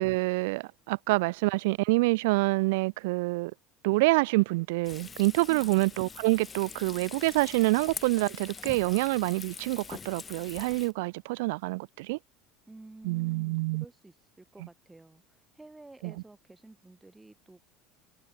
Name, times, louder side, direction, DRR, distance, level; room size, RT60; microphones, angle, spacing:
voice 1, 0.0-3.5 3.8-12.2 13.0-13.8 16.0-16.1, right 24 dB, 70° right, 0.6 m, -27 dB
Frying (food), 4.8-10.9, left 5 dB, 25° left, 4.1 m, -44 dB
voice 2, 5.5-5.8 12.7-15.2 15.5-17.7, right 2 dB, 10° right, 3.4 m, -51 dB
hypercardioid pair, 75°, 0 cm